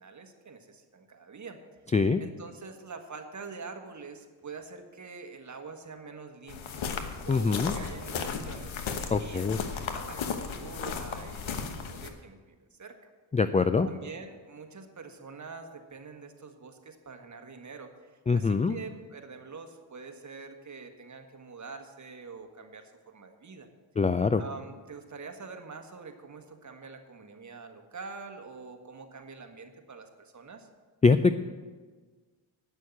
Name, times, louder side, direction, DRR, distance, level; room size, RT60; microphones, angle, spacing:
voice 1, 0.0-1.6 2.2-6.9 7.2-8.8 9.2-10.3 10.6-13.1 13.8-23.7 24.4-30.7, right 4 dB, 35° right, 5 dB, 1.5 m, -45 dB
sound 1, 6.5-12.1, left 6 dB, 75° left, 1.2 m, -35 dB
voice 2, 7.3-7.7 9.1-9.6 13.3-13.9 18.3-18.8 24.0-24.4 31.0-31.4, left 4 dB, 15° left, 11 dB, 0.3 m, -23 dB
9.4 x 6.3 x 8.5 m, 1.4 s
cardioid pair, 70°, 48 cm